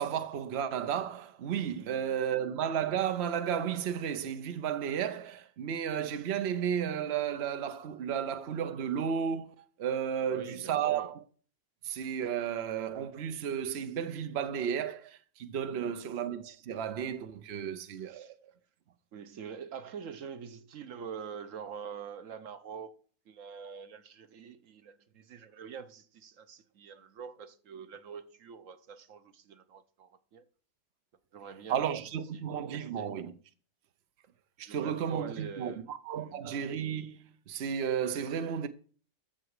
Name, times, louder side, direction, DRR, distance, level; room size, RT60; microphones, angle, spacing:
voice 1, 0.0-11.2 11.8-18.3 31.7-33.3 34.6-38.7, right 8 dB, 60° right, 1.0 m, -33 dB
voice 2, 1.8-2.2 10.3-11.2 15.7-16.0 17.5-18.3 19.1-22.9 23.3-30.4 31.3-31.9 32.3-32.4 32.7-33.1 34.6-35.9 36.2-36.4, right 6 dB, 80° right, 1.2 m, -45 dB
13.0 x 6.8 x 4.8 m
omnidirectional pair, 1.3 m